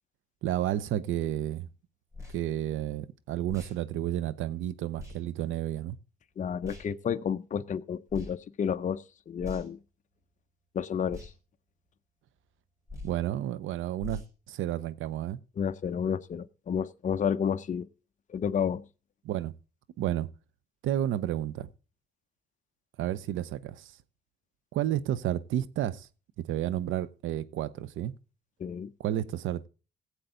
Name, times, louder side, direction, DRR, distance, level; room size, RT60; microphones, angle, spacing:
voice 1, 0.4-1.7 2.3-6.0 13.0-15.4 19.2-19.5 20.0-20.3 20.8-21.7 23.0-23.9 24.7-26.1 26.4-28.1 29.0-29.7, right 12 dB, 85° right, 0.8 m, -31 dB
sound 1, 2.1-2.4 3.5-3.8 5.0-5.2 6.6-6.9 8.1-8.3 9.4-9.8 11.1-11.3 12.9-13.2 14.0-14.3, left 1 dB, 15° right, 4.5 m, -42 dB
voice 2, 6.4-9.8 10.7-11.3 15.6-17.9 18.3-18.8 28.6-28.9, left 7 dB, 40° left, 0.6 m, -31 dB
16.5 x 8.0 x 3.8 m
cardioid pair, 90°, 20 cm